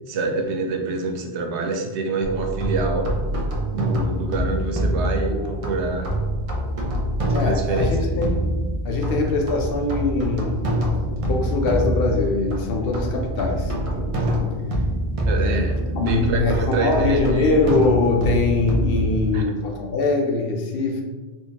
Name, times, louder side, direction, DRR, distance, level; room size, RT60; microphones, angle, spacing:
voice 1, 0.1-3.1 3.7-6.1 7.4-8.1 9.2-9.3 15.3-17.5 19.3-19.5, right 3 dB, 85° right, 3 dB, 0.9 m, -26 dB
sound 1, 2.2-19.4, equal, 50° right, 0.4 m, -25 dB
voice 2, 4.0-4.3 5.3-5.6 5.8-6.2 7.3-8.6 8.8-10.7 11.3-14.2 15.4-15.7 15.9-21.0, left 3 dB, 65° left, 1 dB, 0.7 m, -23 dB
3.6 x 2.6 x 2.8 m, 1.3 s
omnidirectional pair, 1.1 m